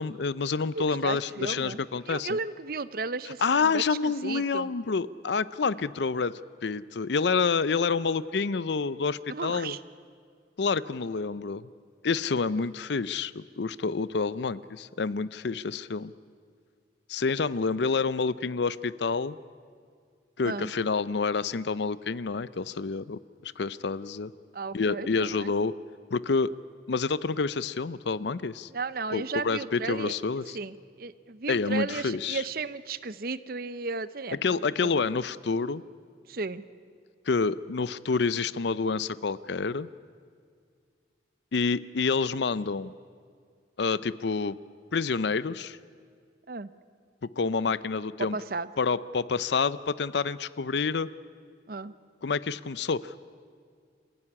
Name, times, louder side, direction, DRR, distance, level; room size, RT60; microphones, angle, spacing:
voice 1, 0.0-2.4 3.4-6.3 6.6-9.8 10.6-11.7 12.0-16.1 17.1-19.4 20.4-24.3 24.7-25.7 26.1-26.5 26.9-28.7 29.1-30.6 31.5-32.4 34.4-35.8 37.3-39.9 41.5-42.9 43.8-44.6 44.9-45.8 47.4-48.4 48.8-51.1 52.2-53.2, left 4 dB, 70° left, 17 dB, 0.5 m, -28 dB
voice 2, 0.7-4.7 9.3-9.8 20.4-20.7 24.5-25.5 28.7-30.2 30.5-34.4 34.8-35.1 36.3-36.6 46.5-46.7 48.3-48.7 51.7-51.9, right 4 dB, 55° right, 15 dB, 0.7 m, -34 dB
27.0 x 15.5 x 9.9 m, 2.1 s
head